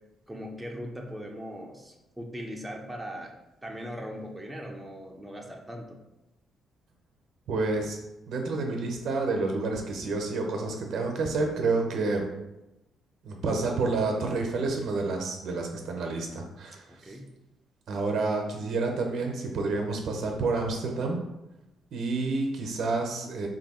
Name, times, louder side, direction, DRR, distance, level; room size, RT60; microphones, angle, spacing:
voice 1, 0.3-3.3 3.6-6.0 16.9-17.3, equal, 10° right, 0 dB, 0.5 m, -39 dB
voice 2, 7.5-8.0 8.3-12.3 13.2-17.1 17.9-21.2 21.9-23.5, right 3 dB, 70° right, 2 dB, 0.7 m, -29 dB
3.0 x 2.6 x 4.2 m, 0.95 s
cardioid pair, 90°, 0 cm